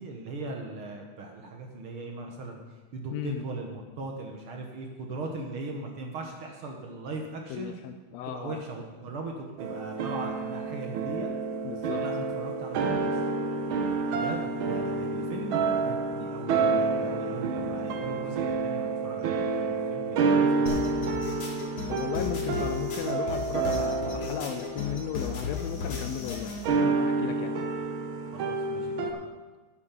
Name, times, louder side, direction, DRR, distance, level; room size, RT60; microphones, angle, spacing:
voice 1, 0.0-2.6 2.9-7.8 8.3-11.3 12.0-13.2 14.1-20.8 28.3-29.3, right 3 dB, 55° right, 2 dB, 1.8 m, -39 dB
voice 2, 3.1-3.4 7.5-8.6 11.6-12.0 21.9-27.6, left 10 dB, 80° left, 9 dB, 1.6 m, -35 dB
sound 1, 9.6-26.0 26.6-29.1, right 4 dB, 75° right, 1.2 m, -29 dB
sound 2, 20.7-26.7, left 5 dB, 60° left, 3.1 m, -35 dB
12.5 x 8.7 x 5.3 m, 1.3 s
omnidirectional pair, 3.3 m